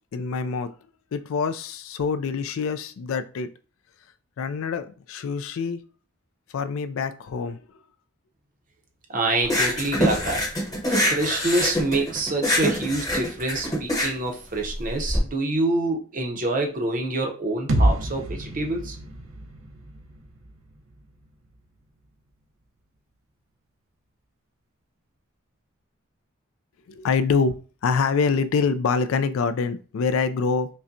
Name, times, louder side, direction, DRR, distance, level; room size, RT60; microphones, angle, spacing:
voice 1, 0.1-0.7 1.1-3.5 4.4-5.8 6.5-7.6 26.9-27.6 27.8-30.7, left 5 dB, 75° left, 11 dB, 0.3 m, -25 dB
voice 2, 9.1-10.4 10.9-19.0, right 2 dB, 40° right, 2 dB, 0.6 m, -26 dB
sound 1, 9.4-15.2, left 1 dB, 15° left, 0.8 m, -25 dB
sound 2, 17.7-21.6, right 1 dB, 75° right, 0.6 m, -28 dB
5.3 x 2.1 x 2.6 m, 0.37 s
head